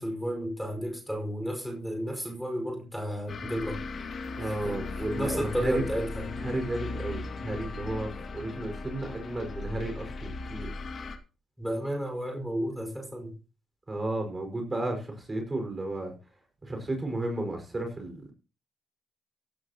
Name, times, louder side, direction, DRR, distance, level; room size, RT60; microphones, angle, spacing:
voice 1, 0.0-3.8 4.4-6.3 11.6-13.3, equal, ahead, 5.4 m, -33 dB
sound 1, 3.3-11.2, left 3 dB, 50° left, 2.3 m, -37 dB
voice 2, 4.4-5.8 6.4-10.7 13.9-16.1 16.6-18.3, right 1 dB, 25° right, 5.4 m, -33 dB
16.0 x 13.5 x 3.0 m
cardioid pair, 90°, 0 cm